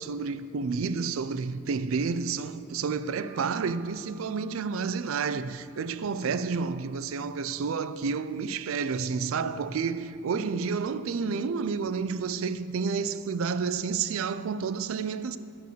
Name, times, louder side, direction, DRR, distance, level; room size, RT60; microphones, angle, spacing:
voice 1, 0.0-15.4, right 5 dB, 70° right, 0.4 m, -30 dB
Wind instrument woodwind instrument, 3.0-7.9, right 5 dB, 30° left, 1.6 m, -58 dB
9.4 x 6.6 x 6.7 m
head